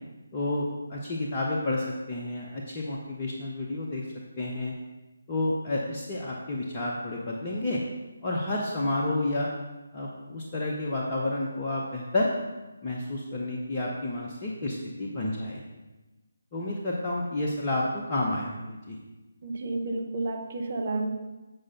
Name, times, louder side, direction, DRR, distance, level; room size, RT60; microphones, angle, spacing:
voice 1, 0.3-4.0 4.4-4.7 5.3-7.8 8.2-9.5 9.9-12.3 12.8-15.6 16.5-19.0, left 2 dB, 25° left, -4 dB, 0.9 m, -30 dB
voice 2, 19.4-21.1, right 2 dB, 40° right, 2 dB, 1.0 m, -31 dB
7.8 x 4.8 x 5.5 m, 1.1 s
figure-of-eight pair, 150°, 0 cm